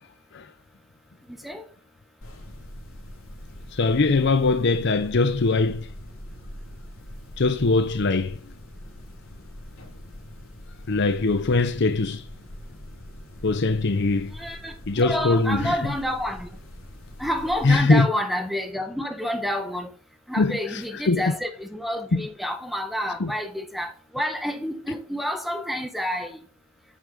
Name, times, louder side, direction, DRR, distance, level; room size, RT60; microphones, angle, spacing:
voice 1, 1.3-1.6 14.3-16.5 17.2-19.9 20.3-26.4, equal, ahead, 1.6 m, -29 dB
sound 1, 2.2-17.7, left 1 dB, 80° left, 3.2 m, -43 dB
voice 2, 3.7-5.9 7.4-8.4 10.9-12.3 13.4-14.3 14.9-15.9 17.6-18.1 20.4-21.3 22.1-22.3 23.2-23.3, left 3 dB, 55° left, 0.7 m, -22 dB
8.3 x 7.6 x 7.2 m
head